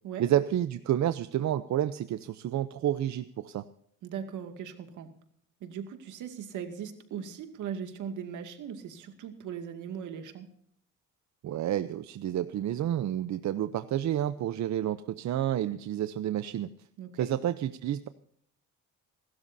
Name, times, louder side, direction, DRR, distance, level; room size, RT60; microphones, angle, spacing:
voice 1, 0.2-3.6 11.4-16.7 17.2-18.1, right 11 dB, 65° right, 12 dB, 0.7 m, -30 dB
voice 2, 4.0-5.1 5.6-10.5 17.0-17.3, right 8 dB, 85° right, 6 dB, 2.3 m, -39 dB
27.5 x 13.0 x 2.7 m, 0.66 s
cardioid pair, 90°, 30 cm